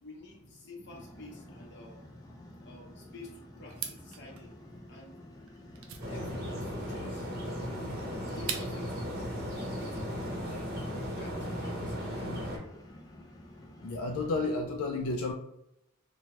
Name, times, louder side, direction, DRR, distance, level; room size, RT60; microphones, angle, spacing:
voice 1, 0.0-2.0 2.6-4.5 4.9-5.2 6.1-7.3 7.7-10.7 11.2-12.8, left 2 dB, 55° left, -1 dB, 0.8 m, -50 dB
sound 1, 0.8-14.6, left 1 dB, 15° left, 0.4 m, -51 dB
sound 2, 3.7-9.0, right 7 dB, 80° right, 0.4 m, -43 dB
sound 3, 6.0-12.6, equal, 45° right, 0.7 m, -36 dB
voice 2, 13.8-15.3, left 3 dB, 90° left, 3 dB, 0.3 m, -31 dB
2.8 x 2.2 x 2.9 m, 0.82 s
head